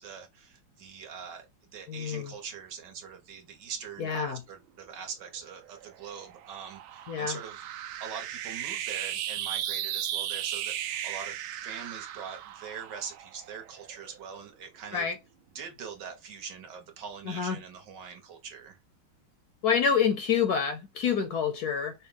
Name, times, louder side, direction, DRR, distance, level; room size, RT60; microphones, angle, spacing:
voice 1, 0.0-1.5 1.7-7.7 8.0-15.1 15.5-18.8, right 7 dB, 65° right, 1.6 m, -42 dB
voice 2, 1.9-2.3 4.0-4.4 7.1-7.4 14.9-15.2 17.3-17.6 19.6-21.9, left 7 dB, 70° left, 0.9 m, -27 dB
sound 1, 5.6-14.2, right 11 dB, 90° right, 1.4 m, -36 dB
5.3 x 2.2 x 3.7 m
omnidirectional pair, 2.2 m